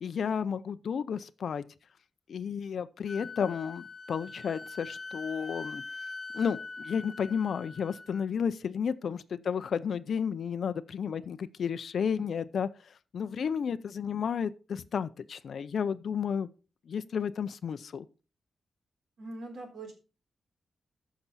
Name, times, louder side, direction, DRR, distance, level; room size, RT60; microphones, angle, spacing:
voice 1, 0.0-1.6 2.3-5.8 6.3-16.5 16.9-18.1, left 7 dB, 65° left, 0.5 m, -32 dB
Wind instrument woodwind instrument, 3.1-8.2, left 3 dB, 20° left, 1.3 m, -43 dB
voice 2, 19.2-19.9, right 2 dB, 65° right, 4.0 m, -42 dB
14.5 x 5.9 x 4.1 m
wide cardioid pair, 160°, 0 cm